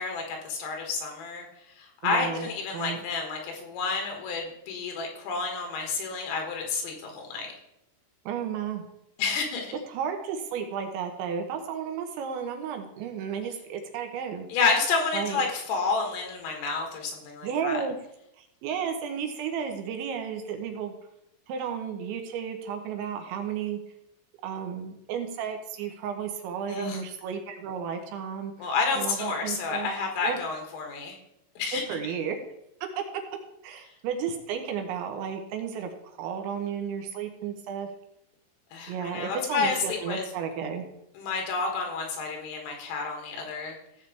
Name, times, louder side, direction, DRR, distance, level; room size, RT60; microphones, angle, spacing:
voice 1, 0.0-1.5 1.8-7.5 9.2-9.7 14.5-17.8 26.7-27.0 28.6-31.2 31.6-31.8 38.7-40.2 41.2-43.8, left 4 dB, 90° left, 2 dB, 4.4 m, -30 dB
voice 2, 2.0-2.5 2.7-3.0 8.3-8.8 9.9-14.5 15.1-15.4 17.4-18.0 18.4-20.9 21.5-23.8 24.4-28.7 28.9-29.9 30.2-30.4 31.7-32.4 33.6-37.9 38.9-40.9, right 7 dB, 75° right, 5 dB, 3.1 m, -33 dB
16.0 x 7.3 x 3.4 m, 0.82 s
omnidirectional pair, 5.7 m